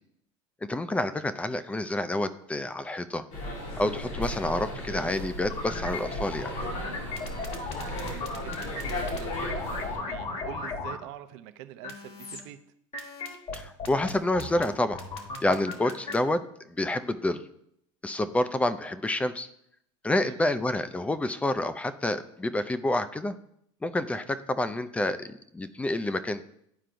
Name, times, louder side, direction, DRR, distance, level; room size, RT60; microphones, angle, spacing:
voice 1, 0.7-3.3 3.8-6.5 13.5-15.0 15.4-17.4 18.0-19.5 20.0-23.4 23.8-26.4, left 1 dB, 10° left, 12 dB, 0.4 m, -28 dB
sound 1, 3.3-10.0, equal, 85° left, 2.7 m, -35 dB
sound 2, 5.5-10.9 11.8-12.4 12.9-16.1, left 3 dB, 40° left, 1.2 m, -36 dB
voice 2, 7.9-12.6 15.7-15.9 18.2-18.3 20.1-20.4 24.2-24.3, right 12 dB, 65° right, 10 dB, 0.6 m, -45 dB
11.0 x 4.5 x 2.6 m, 0.74 s
supercardioid pair, 120°, 16 cm